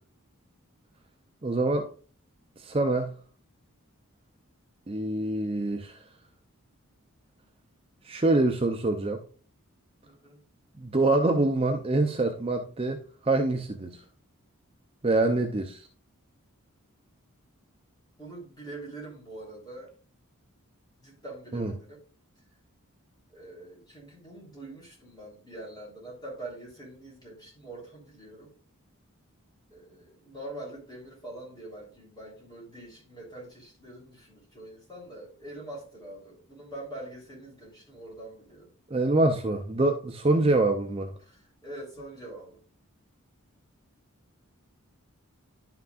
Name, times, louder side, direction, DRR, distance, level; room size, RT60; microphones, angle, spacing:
voice 1, 1.4-1.9 2.6-3.1 4.9-6.0 8.0-9.2 10.8-14.0 15.0-15.9 21.5-21.7 38.9-41.1, right 2 dB, 25° right, 0.5 m, -25 dB
voice 2, 10.0-10.4 18.2-19.9 21.0-22.0 23.3-28.5 29.7-38.7 41.2-42.6, right 1 dB, 20° left, 3.4 m, -44 dB
11.0 x 5.9 x 2.4 m
head